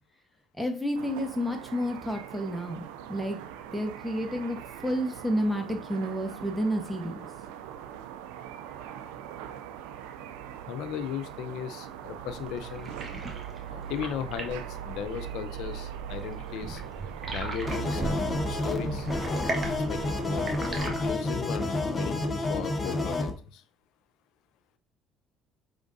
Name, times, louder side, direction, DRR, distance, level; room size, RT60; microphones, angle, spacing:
voice 1, 0.6-2.8 3.1-3.4 3.7-4.6 4.8-7.2, equal, ahead, 4 dB, 1.1 m, -30 dB
sound 1, 0.9-20.9, right 10 dB, 85° right, 0.4 m, -41 dB
voice 2, 10.7-12.9 13.7-16.8 17.3-19.1 19.7-20.5 20.8-23.6, left 8 dB, 75° left, 11 dB, 0.5 m, -36 dB
sound 2, 12.3-21.1, right 2 dB, 30° right, 1.2 m, -39 dB
sound 3, 17.7-23.3, left 2 dB, 30° left, 0.8 m, -30 dB
5.0 x 3.5 x 2.6 m, 0.37 s
supercardioid pair, 80°, 0 cm